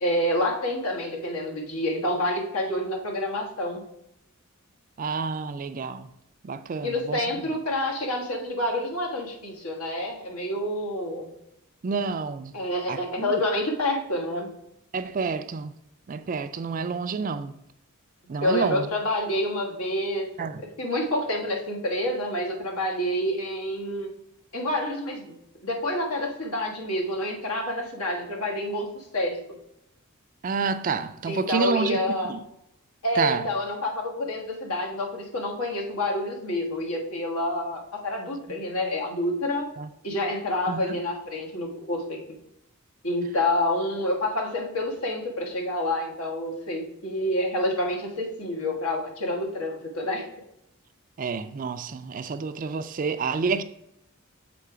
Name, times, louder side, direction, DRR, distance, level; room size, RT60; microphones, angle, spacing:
voice 1, 0.0-3.8 6.8-11.3 12.5-14.5 18.4-20.5 20.8-24.1 24.5-25.3 25.6-29.6 31.3-32.3 33.0-39.7 40.0-42.4 43.0-50.3, left 1 dB, 80° left, 1.6 m, -28 dB
voice 2, 5.0-6.1 6.4-7.3 11.8-12.5 12.9-13.4 14.9-15.7 16.1-17.5 18.3-18.9 20.4-20.6 30.4-32.0 32.3-32.4 33.2-33.4 39.8-39.9 40.7-40.9 51.2-53.6, right 5 dB, 40° right, 0.3 m, -29 dB
6.7 x 4.0 x 4.8 m
head